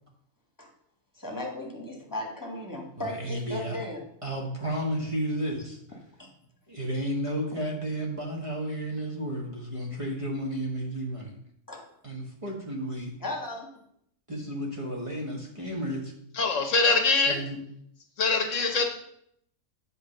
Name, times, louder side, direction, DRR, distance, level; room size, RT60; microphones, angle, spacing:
voice 1, 1.1-4.0 6.2-6.3 7.5-7.6 11.7-11.8 13.2-13.7, left 1 dB, 15° left, 0 dB, 1.6 m, -36 dB
voice 2, 3.0-3.8 4.2-6.0 6.7-11.3 12.0-13.1 14.3-16.1 17.2-17.6, right 1 dB, 25° right, -2 dB, 1.4 m, -32 dB
voice 3, 16.3-17.4 18.2-18.8, left 3 dB, 65° left, 5 dB, 1.3 m, -23 dB
8.1 x 3.3 x 6.4 m, 0.71 s
omnidirectional pair, 1.4 m